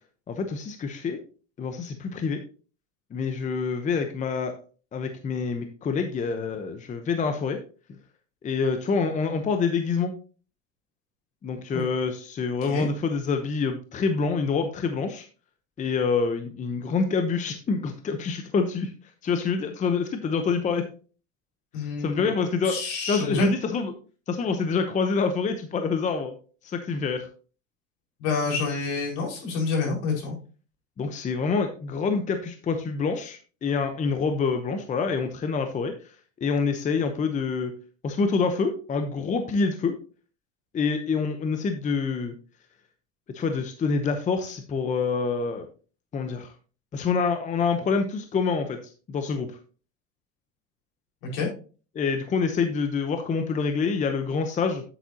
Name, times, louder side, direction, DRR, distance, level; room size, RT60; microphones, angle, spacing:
voice 1, 0.3-1.2 1.6-2.4 3.1-4.5 4.9-7.6 8.4-10.1 11.4-15.3 15.8-18.9 19.2-20.8 22.0-22.7 23.1-23.9 24.3-26.3 26.6-27.3 31.0-35.9 36.4-37.7 38.0-40.0 40.7-42.3 43.3-45.7 46.1-46.5 46.9-48.8 49.1-49.5 51.9-54.8, left 5 dB, 20° left, 7 dB, 0.8 m, -26 dB
voice 2, 21.7-22.3 22.6-23.5 28.2-30.3 51.2-51.5, left 4 dB, 70° left, -1 dB, 4.9 m, -28 dB
9.0 x 8.3 x 2.8 m, 0.37 s
supercardioid pair, 140°, 37 cm